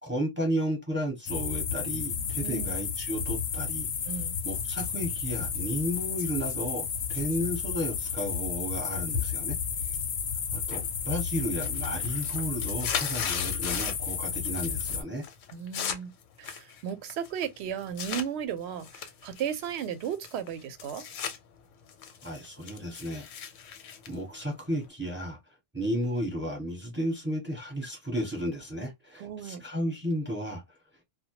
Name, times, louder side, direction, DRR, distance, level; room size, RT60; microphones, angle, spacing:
voice 1, 0.0-3.9 4.4-9.6 10.5-15.2 22.2-23.3 24.1-25.4 25.7-30.6, equal, 10° right, 0.8 m, -33 dB
sound 1, 1.3-15.0, left 6 dB, 65° left, 0.8 m, -32 dB
voice 2, 4.1-4.4 15.5-16.1 16.4-21.0 29.2-29.6, right 9 dB, 65° right, 0.8 m, -35 dB
sound 2, 10.7-11.1 11.4-14.1 14.4-15.0 15.2-18.3 18.8-21.4 21.7-24.9, left 7 dB, 85° left, 0.9 m, -37 dB
2.1 x 2.1 x 2.8 m
omnidirectional pair, 1.3 m